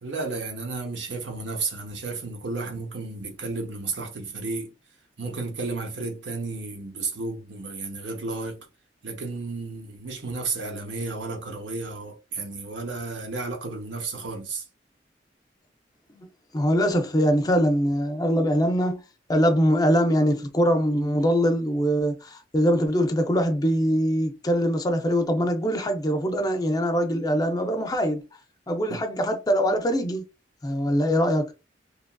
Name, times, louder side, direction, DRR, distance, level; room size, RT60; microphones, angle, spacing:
voice 1, 0.0-4.7 5.2-8.6 9.0-14.6 28.9-29.1, right 3 dB, 75° right, 0.9 m, -32 dB
voice 2, 16.5-19.0 19.3-28.2 28.7-30.2 30.6-31.5, equal, 20° left, 0.5 m, -23 dB
2.9 x 2.5 x 2.2 m
head